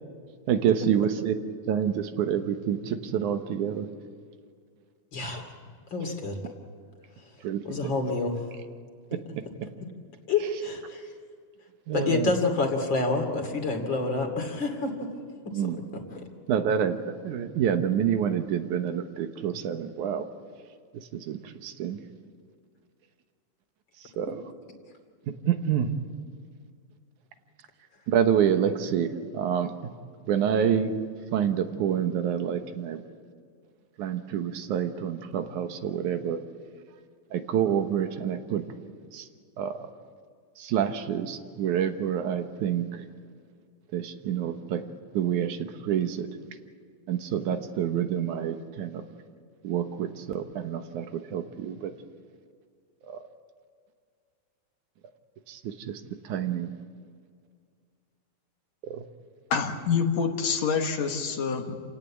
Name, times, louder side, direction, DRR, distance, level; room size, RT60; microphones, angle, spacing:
voice 1, 0.5-1.4 1.7-3.9 7.4-7.9 11.9-12.3 15.5-15.8 16.5-17.0 17.2-20.2 21.1-22.0 24.2-24.4 25.5-25.9 28.1-29.7 30.3-30.9 31.3-33.0 34.0-36.4 37.3-38.6 39.1-39.3 39.6-39.7 40.6-42.8 43.9-44.8 45.1-46.3 47.1-49.1 49.6-51.9 53.1-53.2 55.5-56.0 56.3-56.7 58.9-59.0, right 9 dB, 85° right, 7 dB, 2.7 m, -27 dB
voice 2, 5.1-5.4 5.9-6.4 7.6-8.4 9.6-9.7 10.3-11.0 11.9-14.9 15.4-16.2, left 3 dB, 40° left, 5 dB, 3.1 m, -28 dB
voice 3, 59.5-61.8, left 6 dB, 70° left, 4 dB, 2.7 m, -26 dB
28.0 x 18.0 x 8.4 m, 2.1 s
omnidirectional pair, 3.4 m